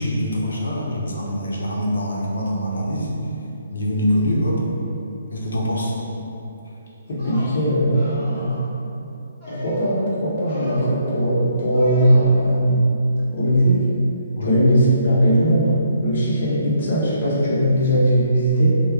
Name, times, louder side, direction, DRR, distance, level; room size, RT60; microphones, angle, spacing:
voice 1, 0.0-3.1 3.7-4.6 5.3-5.9 14.4-14.6, equal, 90° left, -3 dB, 0.7 m, -24 dB
voice 2, 7.1-8.5 9.5-12.8 13.3-13.8 14.4-18.8, right 1 dB, 50° left, -7 dB, 0.9 m, -19 dB
sound 1, 7.1-7.5 7.9-8.7 9.4-9.9 10.4-10.8 11.7-12.2, equal, 10° left, 1.3 m, -37 dB
3.1 x 2.2 x 3.5 m, 2.8 s
hypercardioid pair, 170°, 0 cm